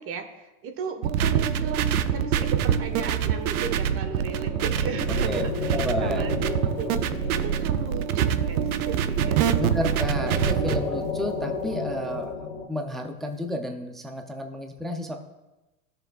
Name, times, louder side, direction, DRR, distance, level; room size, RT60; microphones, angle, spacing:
voice 1, 0.0-9.7, right 5 dB, 30° right, 7 dB, 1.1 m, -36 dB
sound 1, 1.0-10.8, right 8 dB, 75° right, 0.8 m, -25 dB
sound 2, 2.4-3.8 4.3-4.5 5.2-12.3 13.2-13.7, left 6 dB, 55° left, 1.4 m, -47 dB
sound 3, 3.8-12.7, left 4 dB, 90° left, 1.5 m, -34 dB
voice 2, 5.7-6.3 9.6-12.3 12.7-15.2, equal, ahead, 4 dB, 0.3 m, -31 dB
15.0 x 6.5 x 2.3 m, 1.0 s
hypercardioid pair, 115°, 44 cm